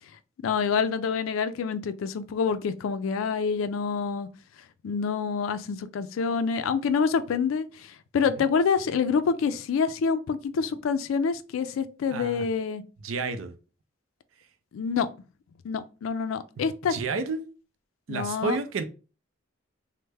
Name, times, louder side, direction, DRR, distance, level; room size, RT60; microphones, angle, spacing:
voice 1, 0.4-4.3 4.8-12.8 14.7-15.1 15.6-17.0 18.1-18.6, left 5 dB, 90° left, 0.3 m, -27 dB
voice 2, 12.1-12.5 13.0-13.5 16.9-17.4 18.1-18.8, right 4 dB, 85° right, 0.4 m, -30 dB
3.2 x 2.0 x 3.3 m
head